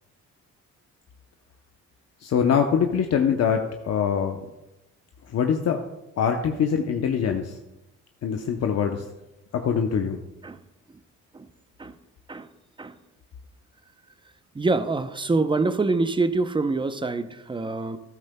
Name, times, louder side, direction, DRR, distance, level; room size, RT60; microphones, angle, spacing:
voice 1, 2.2-4.4 5.3-5.8 6.2-7.6 8.2-9.0 9.6-10.2, left 7 dB, 55° left, 4 dB, 0.8 m, -23 dB
voice 2, 14.5-18.0, right 3 dB, 15° right, 11 dB, 0.7 m, -25 dB
13.5 x 12.0 x 2.3 m, 0.92 s
cardioid pair, 90°, 30 cm